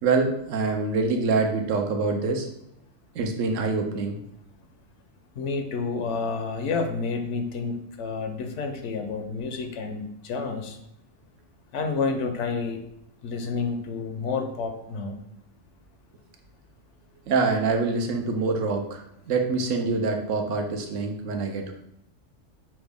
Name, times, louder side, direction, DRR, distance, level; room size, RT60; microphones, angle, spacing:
voice 1, 0.0-2.5 3.1-4.2 17.3-21.7, right 4 dB, 80° right, 4 dB, 1.0 m, -25 dB
voice 2, 5.4-10.8 11.7-12.8 13.2-15.2, left 4 dB, 70° left, 5 dB, 0.9 m, -29 dB
5.8 x 2.1 x 3.4 m, 0.77 s
omnidirectional pair, 1.3 m